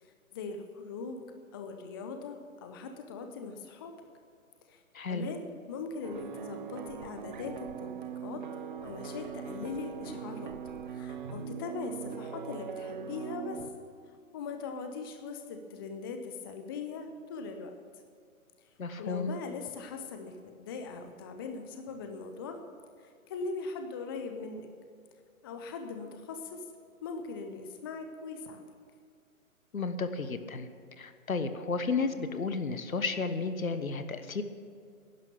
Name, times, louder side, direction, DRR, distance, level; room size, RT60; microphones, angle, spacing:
voice 1, 0.0-1.3 1.5-4.0 4.7-4.8 5.1-5.4 5.7-8.5 8.8-10.5 10.9-13.7 14.1-17.7 19.0-22.6 23.0-24.7 25.4-26.6 27.0-28.6, left 4 dB, 15° left, 6 dB, 0.6 m, -40 dB
voice 2, 4.9-5.3 18.8-19.3 29.7-30.7 31.0-34.4, left 4 dB, 75° left, 10 dB, 1.4 m, -32 dB
sound 1, 6.0-13.7, right 7 dB, 35° right, 0.7 m, -41 dB
11.5 x 11.0 x 8.4 m, 2.2 s
figure-of-eight pair, 135°, 42 cm